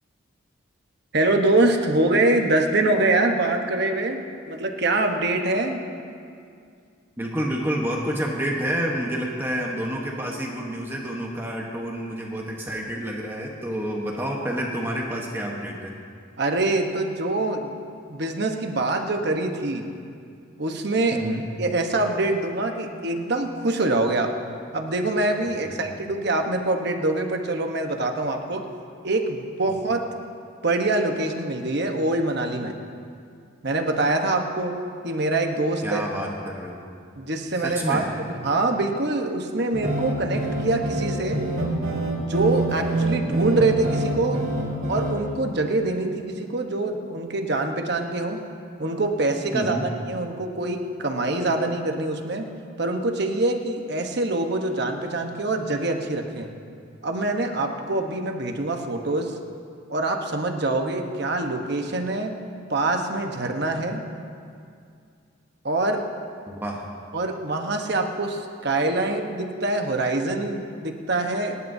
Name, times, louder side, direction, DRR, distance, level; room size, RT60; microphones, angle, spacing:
voice 1, 1.1-5.8 16.4-17.7 18.1-19.9 20.6-21.2 21.6-24.3 24.7-28.7 29.0-30.1 30.6-32.8 33.6-36.0 37.2-41.4 42.2-44.5 44.9-48.4 48.8-52.5 52.8-56.5 57.0-59.3 59.9-62.4 62.7-64.0 65.6-66.1 67.1-71.6, right 2 dB, 50° right, 3 dB, 1.1 m, -24 dB
voice 2, 7.2-15.9 21.1-21.4 25.6-25.8 35.8-36.8 37.6-38.1 49.5-49.9 66.5-66.8, equal, 10° right, -1 dB, 1.1 m, -29 dB
sound 1, 39.7-45.2, right 1 dB, 85° right, 2.0 m, -26 dB
27.5 x 11.0 x 2.8 m, 2.4 s
head